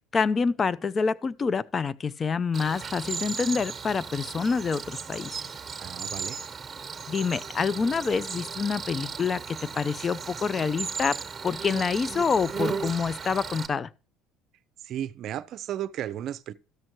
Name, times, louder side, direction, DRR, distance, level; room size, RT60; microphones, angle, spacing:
voice 1, 0.1-5.3 7.1-13.9, left 5 dB, 35° left, 0.5 m, -27 dB
Cricket, 2.5-13.7, right 5 dB, 25° right, 1.2 m, -36 dB
voice 2, 5.8-6.4 14.8-16.5, right 11 dB, 60° right, 0.5 m, -34 dB
13.0 x 6.4 x 3.0 m
supercardioid pair, 80°, 0 cm